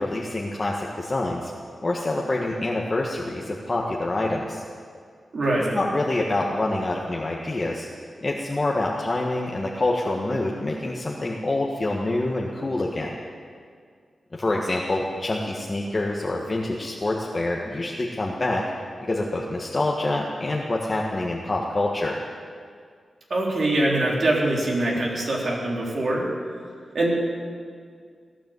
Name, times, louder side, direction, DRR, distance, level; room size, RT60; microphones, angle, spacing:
voice 1, 0.0-1.5 1.8-4.6 5.7-7.9 8.2-13.1 14.3-18.7 19.1-22.2, left 2 dB, 35° left, -2 dB, 1.6 m, -26 dB
voice 2, 5.3-5.8 23.3-26.3 26.9-27.3, right 1 dB, 60° right, -2 dB, 3.9 m, -23 dB
18.0 x 10.0 x 7.9 m, 2.1 s
cardioid pair, 80°, 0 cm